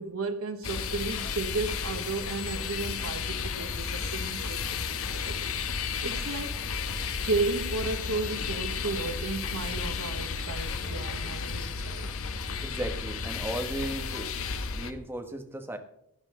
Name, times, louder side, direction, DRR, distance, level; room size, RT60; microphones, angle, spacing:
voice 1, 0.0-5.5 6.0-6.6 7.2-12.1, right 3 dB, 75° right, 1.1 m, -34 dB
sound 1, 0.6-14.9, left 5 dB, 70° left, 1.0 m, -33 dB
voice 2, 12.6-14.4 14.7-15.8, right 1 dB, 10° right, 1.2 m, -36 dB
16.0 x 10.5 x 3.7 m
head